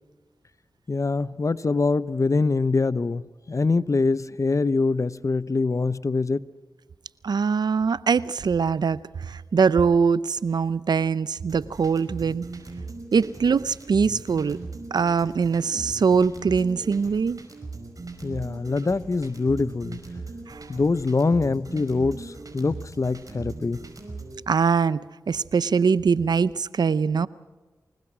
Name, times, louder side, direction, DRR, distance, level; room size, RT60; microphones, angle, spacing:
voice 1, 0.9-3.2 3.5-6.5 18.2-20.0 20.7-23.8, left 3 dB, 50° left, 17 dB, 0.8 m, -24 dB
voice 2, 7.2-12.5 13.1-14.6 14.9-17.4 20.5-20.7 24.5-27.3, right 5 dB, 75° right, 17 dB, 0.7 m, -22 dB
sound 1, 11.5-24.4, right 3 dB, 55° right, 5.3 m, -39 dB
25.0 x 20.5 x 6.2 m, 1.2 s
cardioid pair, 40°, 7 cm